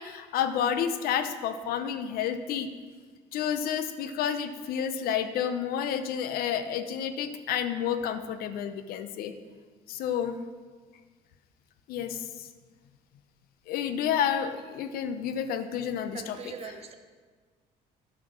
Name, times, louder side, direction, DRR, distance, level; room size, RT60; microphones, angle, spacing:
voice 1, 0.0-2.7 3.3-9.3 9.9-10.4 11.9-12.5 13.7-16.8, left 8 dB, 70° left, 10 dB, 0.7 m, -30 dB
voice 2, 16.1-17.0, right 6 dB, 40° right, 7 dB, 0.9 m, -41 dB
9.8 x 5.9 x 6.5 m, 1.5 s
cardioid pair, 125°, 16 cm